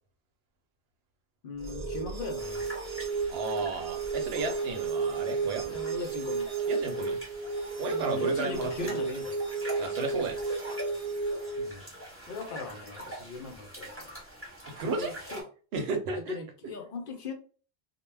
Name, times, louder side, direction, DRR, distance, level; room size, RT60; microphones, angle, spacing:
voice 1, 1.4-2.7 5.7-6.5 7.9-9.4 11.6-11.8 12.3-14.1 14.9-15.4 16.3-17.3, left 3 dB, 60° left, 3 dB, 0.7 m, -39 dB
sound 1, 1.6-11.6, right 4 dB, 50° right, 0.5 m, -33 dB
sound 2, 2.4-15.4, right 1 dB, 15° right, 1.0 m, -45 dB
voice 2, 3.3-5.6 6.7-7.2 7.7-9.0 9.8-10.4 14.7-15.1 15.7-16.4, right 4 dB, 75° right, 4 dB, 0.8 m, -33 dB
2.2 x 2.1 x 3.2 m, 0.39 s
omnidirectional pair, 1.1 m